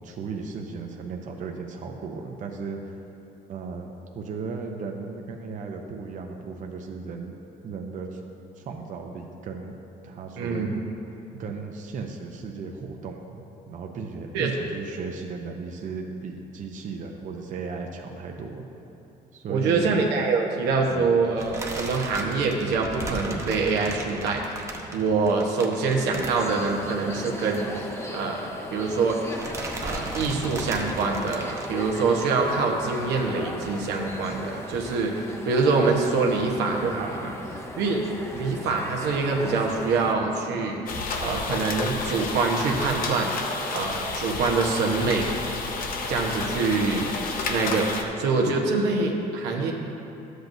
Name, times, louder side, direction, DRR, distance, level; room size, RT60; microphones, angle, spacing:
voice 1, 0.0-3.0 3.5-7.4 7.6-8.2 8.6-9.7 10.0-10.7 11.4-18.7 19.3-19.9 20.9-21.1, right 4 dB, 50° right, 2 dB, 0.7 m, -36 dB
voice 2, 10.4-10.8 14.3-14.5 19.5-27.7 28.1-29.2 29.8-37.3 37.8-38.0 38.3-40.8 41.2-43.3 43.7-45.3 46.1-47.1 47.5-49.7, right 4 dB, 90° right, 0 dB, 1.1 m, -25 dB
sound 1, 21.4-27.0 27.2-27.4 27.7-27.8 28.7-29.0 29.3-31.7, right 2 dB, 15° right, 0.9 m, -36 dB
sound 2, 26.3-40.1, left 1 dB, 15° left, 0.7 m, -37 dB
sound 3, 40.9-48.0, left 3 dB, 55° left, 0.8 m, -31 dB
12.0 x 7.9 x 2.7 m, 3.0 s
cardioid pair, 110°, 17 cm